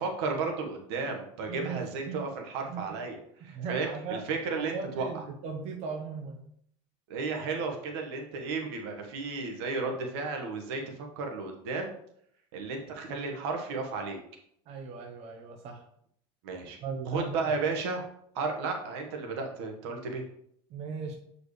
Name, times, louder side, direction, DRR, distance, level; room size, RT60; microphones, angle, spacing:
voice 1, 0.0-5.1 7.1-11.9 12.5-14.2 16.4-16.8 17.1-18.0 18.3-20.2, right 4 dB, 85° right, 2 dB, 1.5 m, -33 dB
voice 2, 1.5-2.2 2.7-3.0 3.5-4.2 4.6-6.4 14.7-15.8 16.8-17.6 20.7-21.2, right 5 dB, 55° right, 2 dB, 1.1 m, -38 dB
8.2 x 4.9 x 3.3 m, 0.69 s
supercardioid pair, 120°, 13 cm